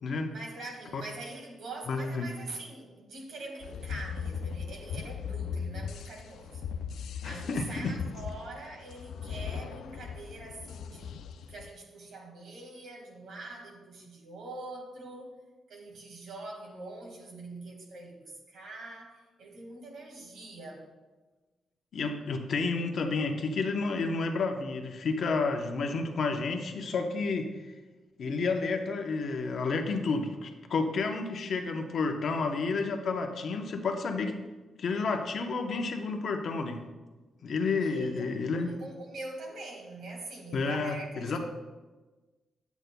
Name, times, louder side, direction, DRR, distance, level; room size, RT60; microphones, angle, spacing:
voice 1, 0.3-6.6 7.2-11.1 11.5-15.4 15.7-20.9 37.8-41.4, right 2 dB, 70° right, 1.8 m, -44 dB
voice 2, 1.9-2.3 7.2-7.9 21.9-27.5 28.2-34.4 34.8-36.8 37.4-38.7 40.5-41.4, left 4 dB, 50° left, 0.8 m, -30 dB
sound 1, 3.6-11.7, left 7 dB, 80° left, 0.3 m, -38 dB
10.5 x 8.0 x 2.2 m
wide cardioid pair, 165°, 0 cm